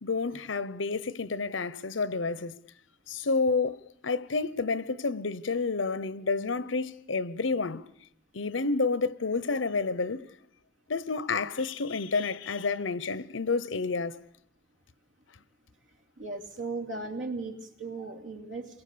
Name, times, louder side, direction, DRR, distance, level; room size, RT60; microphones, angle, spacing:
voice 1, 0.0-2.6 3.1-7.9 8.3-10.2 10.9-14.2, left 4 dB, 85° left, 0.9 m, -29 dB
voice 2, 16.2-18.7, right 3 dB, 90° right, 2.9 m, -37 dB
28.5 x 22.5 x 6.9 m
head